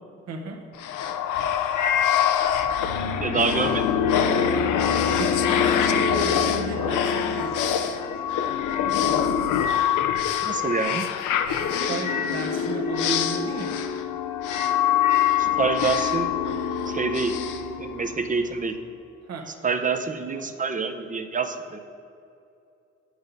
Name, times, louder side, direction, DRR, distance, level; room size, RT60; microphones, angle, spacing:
voice 1, 0.3-0.7 4.9-7.9 11.7-13.8 19.3-19.8 20.3-20.5, right 4 dB, 55° right, 4 dB, 1.2 m, -35 dB
sound 1, 0.8-18.4, left 8 dB, 85° left, 0.7 m, -24 dB
voice 2, 3.2-3.9 10.4-11.1 15.4-16.3 16.9-17.4 17.8-18.8 19.6-21.8, right 4 dB, 25° right, 8 dB, 0.7 m, -26 dB
8.7 x 6.5 x 5.2 m, 2.6 s
cardioid pair, 90°, 30 cm